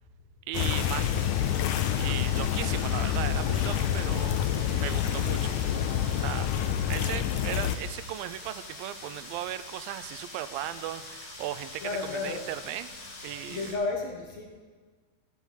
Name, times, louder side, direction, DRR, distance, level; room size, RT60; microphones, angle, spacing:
sound 1, 0.5-7.8, left 10 dB, 85° left, 1.8 m, -27 dB
sound 2, 0.5-13.7, left 2 dB, 40° left, 2.6 m, -43 dB
voice 1, 0.5-1.3 2.0-4.3 4.8-5.6 5.9-6.5 6.9-12.9 13.2-13.8, right 13 dB, 80° right, 14 dB, 2.2 m, -37 dB
voice 2, 11.8-12.4 13.5-14.5, left 3 dB, 60° left, 0 dB, 1.9 m, -32 dB
14.5 x 6.3 x 8.4 m, 1.4 s
omnidirectional pair, 4.4 m